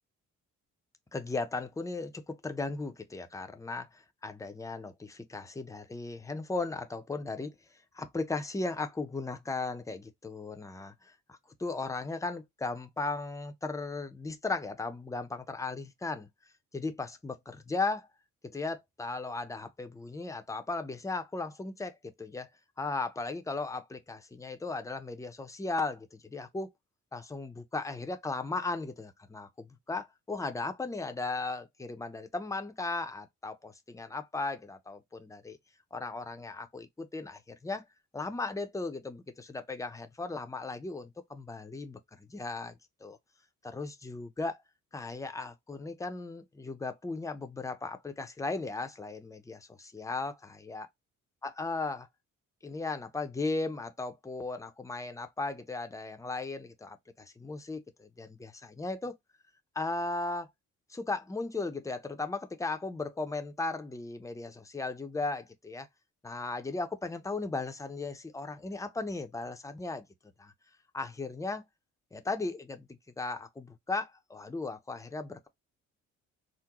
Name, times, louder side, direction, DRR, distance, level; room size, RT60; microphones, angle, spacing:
voice 1, 1.1-7.5 7.9-16.3 16.7-18.1 18.5-21.9 22.2-22.5 22.8-26.7 27.1-35.6 35.9-37.8 38.1-43.2 43.6-44.6 44.9-50.9 51.4-52.1 52.6-59.1 59.8-60.5 60.9-65.9 66.2-70.1 70.4-70.5 70.9-71.6 72.1-72.9 73.2-75.5, left 3 dB, 10° left, 0.6 m, -36 dB
3.7 x 2.1 x 2.9 m
cardioid pair, 90°, 30 cm